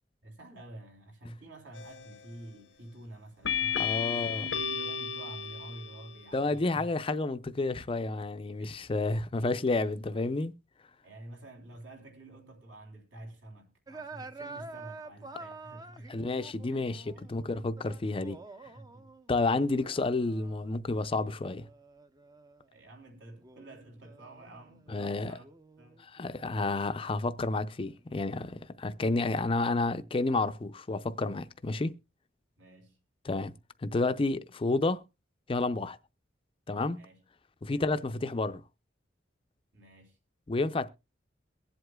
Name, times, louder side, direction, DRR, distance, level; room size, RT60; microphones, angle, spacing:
voice 1, 0.2-6.9 8.6-8.9 11.0-16.1 16.7-16.8 17.1-17.3 18.7-19.1 22.7-25.5 25.8-26.1 32.6-33.0 36.9-37.2 37.7-37.9 39.7-40.2, right 1 dB, 75° right, 3.3 m, -49 dB
sound 1, 1.7-2.2 3.4-6.2, left 8 dB, 85° left, 0.9 m, -33 dB
voice 2, 3.8-4.4 6.3-10.5 16.1-18.4 19.3-21.7 24.9-25.4 26.0-31.9 33.2-33.5 33.8-35.0 35.5-36.0 36.7-37.0 37.6-38.6 40.5-40.9, left 3 dB, 30° left, 0.5 m, -30 dB
sound 2, 13.9-22.7 23.4-24.9 25.4-28.3, right 3 dB, 20° right, 0.5 m, -49 dB
22.5 x 7.9 x 2.2 m
head